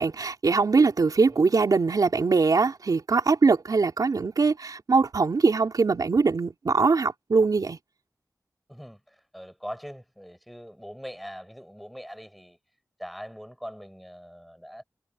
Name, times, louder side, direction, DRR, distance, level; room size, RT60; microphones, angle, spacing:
voice 1, 0.0-7.8, right 4 dB, 80° right, 3.6 m, -22 dB
voice 2, 9.3-12.6 13.0-14.8, equal, ahead, 6.4 m, -41 dB
wide cardioid pair, 65°, 6 cm